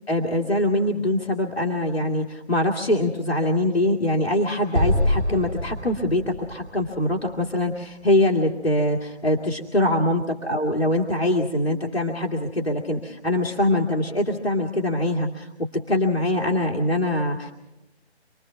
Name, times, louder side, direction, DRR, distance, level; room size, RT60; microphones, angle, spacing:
voice 1, 0.1-15.5 15.9-17.5, left 1 dB, 65° left, 0 dB, 2.3 m, -23 dB
Explosion, 4.7-8.0, left 1 dB, 90° right, 1.6 m, -26 dB
27.5 x 20.0 x 5.9 m, 0.97 s
figure-of-eight pair, 155°, 34 cm